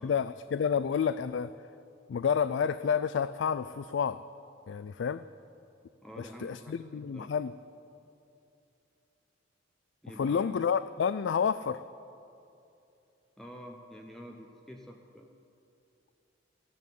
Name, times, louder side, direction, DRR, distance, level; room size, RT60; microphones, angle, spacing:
voice 1, 0.0-1.5 2.1-4.2 4.7-5.2 6.2-7.5 10.2-11.8, left 7 dB, 70° left, 13 dB, 0.3 m, -29 dB
voice 2, 6.0-7.3 10.0-10.5 13.4-15.3, equal, ahead, 2 dB, 0.7 m, -48 dB
15.0 x 10.5 x 8.4 m, 2.7 s
head